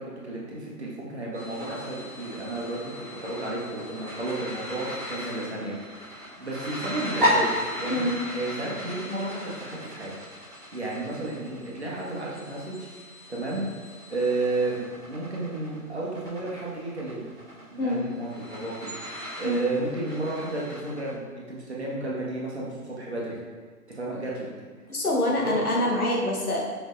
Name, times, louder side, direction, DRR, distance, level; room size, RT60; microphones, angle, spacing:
voice 1, 0.0-2.9 3.2-7.5 7.8-8.1 8.3-10.1 10.7-12.9 13.3-13.6 14.1-14.8 15.1-17.2 17.7-18.9 19.4-23.4 23.9-24.5 25.4-25.6, right 2 dB, 45° right, -5 dB, 1.0 m, -32 dB
sound 1, 1.3-21.1, equal, ahead, 1.4 m, -35 dB
voice 2, 24.9-26.6, left 1 dB, 70° left, -2 dB, 1.2 m, -25 dB
5.1 x 3.8 x 2.5 m, 1.5 s
figure-of-eight pair, 155°, 47 cm